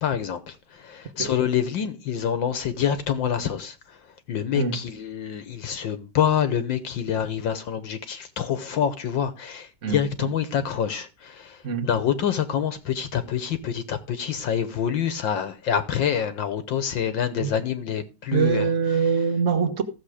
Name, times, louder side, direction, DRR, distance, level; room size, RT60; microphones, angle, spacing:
voice 1, 0.0-4.0 4.3-18.7 19.0-19.1, left 8 dB, 65° left, 1.6 m, -26 dB
voice 2, 18.3-19.8, right 6 dB, 40° right, 1.3 m, -23 dB
14.5 x 7.3 x 4.9 m
omnidirectional pair, 2.4 m